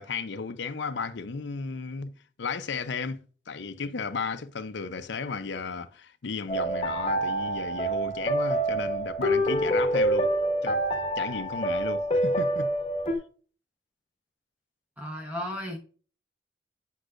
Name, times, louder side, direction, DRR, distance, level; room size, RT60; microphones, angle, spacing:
voice 1, 0.0-2.1 2.4-10.3 10.6-10.8 11.2-12.7, left 5 dB, 70° left, 0.6 m, -34 dB
sound 1, 6.5-13.2, right 1 dB, 30° left, 1.0 m, -26 dB
voice 2, 15.0-15.8, equal, 10° right, 0.9 m, -34 dB
8.0 x 5.5 x 2.5 m
head